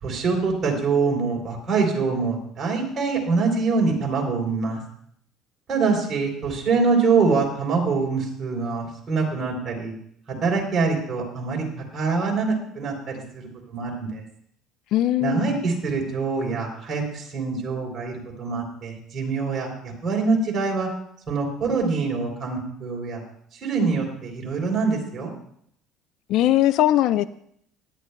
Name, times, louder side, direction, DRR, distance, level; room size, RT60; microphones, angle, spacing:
voice 1, 0.0-4.8 5.7-9.9 10.3-11.6 11.9-14.2 15.2-20.9 21.3-23.2 23.6-25.3, right 4 dB, 25° right, -2 dB, 3.4 m, -24 dB
voice 2, 14.9-15.5 26.3-27.3, left 13 dB, 60° left, 16 dB, 0.3 m, -20 dB
17.5 x 11.5 x 2.3 m, 0.67 s
cardioid pair, 145°, 0 cm